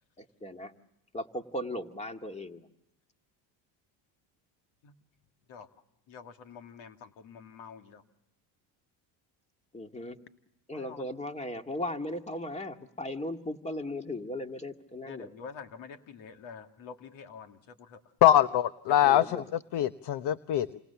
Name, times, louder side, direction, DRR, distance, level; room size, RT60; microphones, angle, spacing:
voice 1, 0.2-0.7 1.1-2.7 9.7-10.2 10.7-15.3 19.0-19.4, left 1 dB, 15° left, 5 dB, 2.3 m, -37 dB
voice 2, 6.1-8.0 10.7-11.1 15.1-18.0 18.9-19.2, left 6 dB, 70° left, 6 dB, 2.4 m, -46 dB
voice 3, 18.2-19.4 19.7-20.8, left 12 dB, 55° left, 13 dB, 1.0 m, -23 dB
29.5 x 26.5 x 7.1 m, 0.86 s
supercardioid pair, 90°, 47 cm